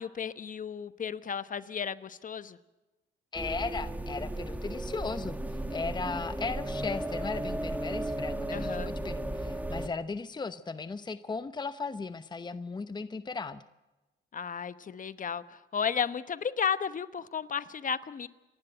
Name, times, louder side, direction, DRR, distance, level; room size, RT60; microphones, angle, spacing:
voice 1, 0.0-2.6 8.5-8.9 14.3-18.3, left 7 dB, 40° left, 14 dB, 1.1 m, -33 dB
voice 2, 3.3-13.6, left 4 dB, 20° left, 12 dB, 0.8 m, -37 dB
sound 1, 3.3-9.9, right 1 dB, 10° right, 1.7 m, -35 dB
28.5 x 12.0 x 9.2 m, 1.1 s
cardioid pair, 90°, 20 cm